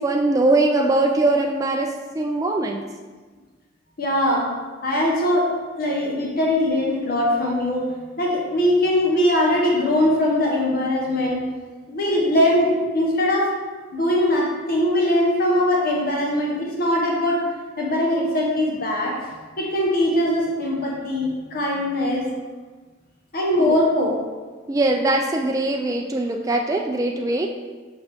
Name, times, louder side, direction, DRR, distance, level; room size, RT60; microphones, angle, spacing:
voice 1, 0.0-2.8 7.4-7.5 7.9-8.0 9.1-9.3 12.3-12.4 22.3-22.4 23.6-23.8 24.7-27.5, right 2 dB, 20° right, 2 dB, 0.3 m, -22 dB
voice 2, 4.0-4.5 4.8-5.5 5.8-7.8 8.2-11.4 11.9-13.5 13.9-17.4 17.8-19.2 19.6-22.3 23.3-24.2, left 1 dB, 55° left, -2 dB, 1.1 m, -21 dB
5.9 x 5.3 x 3.5 m, 1.4 s
head